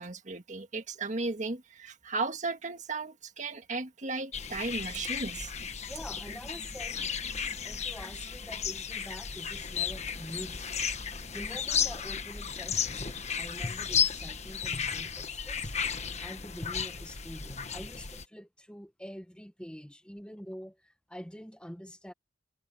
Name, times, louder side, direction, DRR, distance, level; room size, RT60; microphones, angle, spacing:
voice 1, 0.0-5.5, right 3 dB, 40° right, 1.8 m, -35 dB
sound 1, 4.3-18.2, left 7 dB, 35° left, 1.4 m, -34 dB
voice 2, 5.9-7.1 7.6-10.9 11.3-15.7 16.2-22.1, equal, 5° left, 1.5 m, -46 dB
head